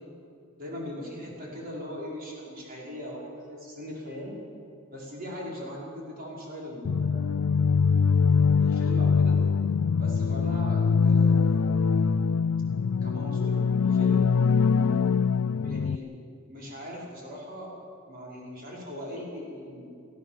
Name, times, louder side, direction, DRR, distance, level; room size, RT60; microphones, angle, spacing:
voice 1, 0.6-4.3 4.9-7.4 8.6-9.4 10.0-11.8 13.0-14.3 15.6-16.1 16.5-17.7 18.1-19.9, left 1 dB, 45° right, -4 dB, 5.6 m, -39 dB
sound 1, 6.8-15.9, left 5 dB, 90° left, 0.4 m, -23 dB
27.0 x 16.0 x 7.4 m, 2.5 s
head